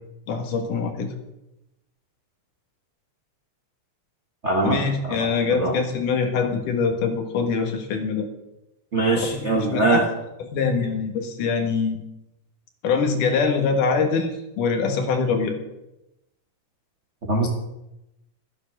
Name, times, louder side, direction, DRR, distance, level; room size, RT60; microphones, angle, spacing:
voice 1, 0.3-1.1 4.6-8.3 9.5-10.0 10.5-12.0 12.8-14.3 14.6-15.6, left 5 dB, 80° left, 4 dB, 3.2 m, -23 dB
voice 2, 4.4-5.7 8.9-10.1 17.3-17.5, right 2 dB, 45° right, 0 dB, 0.9 m, -22 dB
12.5 x 9.6 x 6.1 m, 0.90 s
omnidirectional pair, 3.6 m